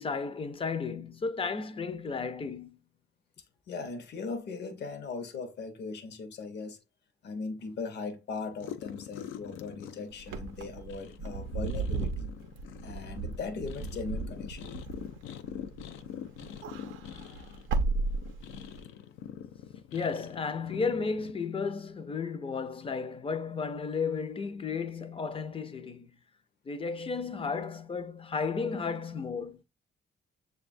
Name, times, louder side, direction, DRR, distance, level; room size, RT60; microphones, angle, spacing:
voice 1, 0.0-2.8 19.9-26.2 26.7-29.6, left 5 dB, 25° left, 0.5 m, -33 dB
voice 2, 3.7-6.8 7.2-12.2 12.8-14.7, left 4 dB, 60° left, 0.8 m, -39 dB
sound 1, 8.5-21.3, left 9 dB, 85° left, 0.4 m, -45 dB
Wind / Car, 10.2-16.0 16.4-18.8, right 4 dB, 85° right, 0.5 m, -35 dB
6.7 x 2.3 x 2.5 m
cardioid pair, 90°, 20 cm